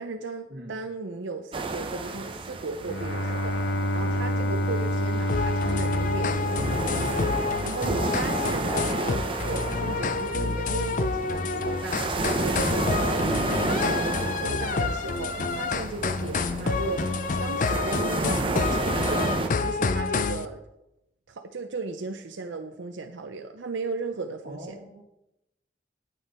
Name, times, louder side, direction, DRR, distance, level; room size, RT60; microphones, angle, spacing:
voice 1, 0.0-19.3 19.6-20.6 21.3-24.8, right 3 dB, 90° right, 5 dB, 0.6 m, -36 dB
sound 1, 1.5-19.5, right 2 dB, 30° right, 0.7 m, -31 dB
Bowed string instrument, 2.8-7.7, equal, 70° left, 0.9 m, -28 dB
sound 2, 5.3-20.5, left 4 dB, 45° left, 0.5 m, -28 dB
voice 2, 24.4-25.0, equal, 55° right, 2 dB, 1.7 m, -42 dB
9.3 x 9.0 x 4.3 m, 0.88 s
head